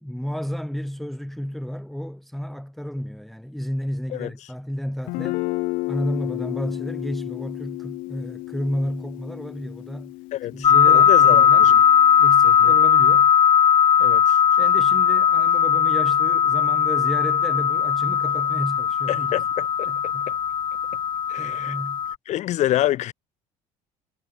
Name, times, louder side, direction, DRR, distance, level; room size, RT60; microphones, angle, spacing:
voice 1, 0.0-5.4 5.9-10.1 10.5-11.7 12.2-13.3 14.6-19.4 19.9-20.3 21.4-22.0, equal, ahead, 1.3 m, -31 dB
Guitar, 5.1-12.8, left 22 dB, 75° left, 0.9 m, -33 dB
voice 2, 10.3-11.8 12.4-12.7 14.0-14.4 19.1-20.1 21.3-21.7 22.3-23.1, left 14 dB, 55° left, 3.2 m, -27 dB
sound 1, 10.6-22.1, left 8 dB, 30° left, 1.2 m, -18 dB
cardioid pair, 150°, 14 cm